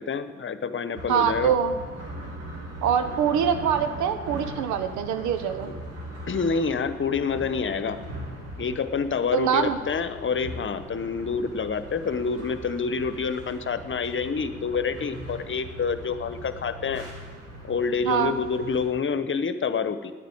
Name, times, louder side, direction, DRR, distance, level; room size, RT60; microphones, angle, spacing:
voice 1, 0.0-1.5 6.3-8.0 8.6-17.0 17.6-20.1, left 5 dB, 40° left, 12 dB, 1.1 m, -27 dB
sound 1, 0.9-18.9, right 1 dB, 55° right, 4.1 m, -40 dB
voice 2, 1.1-1.7 2.8-5.7 9.3-9.8 18.0-18.4, right 8 dB, 75° right, 9 dB, 1.2 m, -24 dB
10.5 x 9.5 x 8.7 m, 1.4 s
hypercardioid pair, 50°, 30 cm